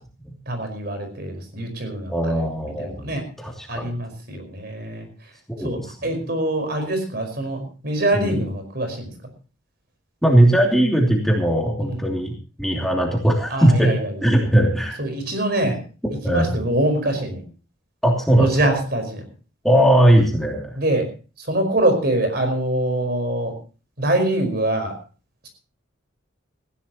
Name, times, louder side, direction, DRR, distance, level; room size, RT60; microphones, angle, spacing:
voice 1, 0.5-2.3 2.8-3.2 3.7-5.1 5.6-9.1 11.8-12.0 13.5-14.1 15.0-15.8 16.3-17.4 18.4-19.2 20.8-21.0 21.5-23.5 24.0-24.9, right 1 dB, 50° right, 7 dB, 5.0 m, -24 dB
voice 2, 2.1-3.0 3.4-3.9 5.5-6.3 8.1-8.4 10.2-12.3 12.6-13.9 14.2-15.0 16.0-16.6 18.0-18.8 19.6-20.8, right 1 dB, ahead, 0 dB, 2.9 m, -19 dB
19.5 x 15.5 x 3.0 m, 0.36 s
head